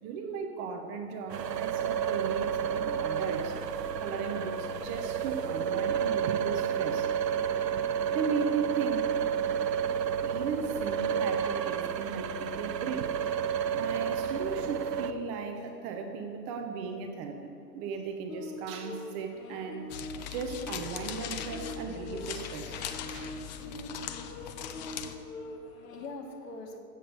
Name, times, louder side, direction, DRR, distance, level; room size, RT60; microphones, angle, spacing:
voice 1, 0.0-3.6 4.0-7.1 8.1-9.1 10.2-13.1 13.7-19.9 20.3-22.8 23.1-23.3, right 5 dB, 20° right, 4 dB, 0.6 m, -36 dB
sound 1, 1.3-15.1, right 8 dB, 85° right, 0.9 m, -31 dB
sound 2, 18.3-26.1, left 1 dB, 55° left, 1.8 m, -43 dB
sound 3, 19.9-25.1, left 9 dB, 25° left, 0.6 m, -40 dB
voice 2, 25.0-26.8, left 2 dB, 75° left, 1 dB, 2.7 m, -45 dB
15.0 x 8.0 x 6.6 m, 2.8 s
hypercardioid pair, 140°, 48 cm